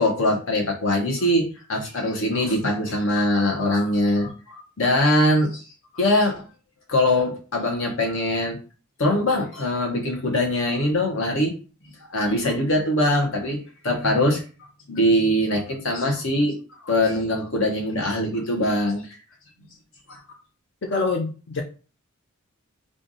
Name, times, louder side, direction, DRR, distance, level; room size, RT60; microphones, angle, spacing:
voice 1, 0.0-5.6 5.9-6.4 6.9-8.6 9.0-11.5 12.1-14.4 14.9-16.6 16.8-19.1 20.1-20.2, left 1 dB, 75° left, 1 dB, 1.2 m, -22 dB
voice 2, 20.8-21.6, left 3 dB, 55° left, 2 dB, 0.5 m, -25 dB
3.3 x 2.5 x 4.0 m, 0.36 s
head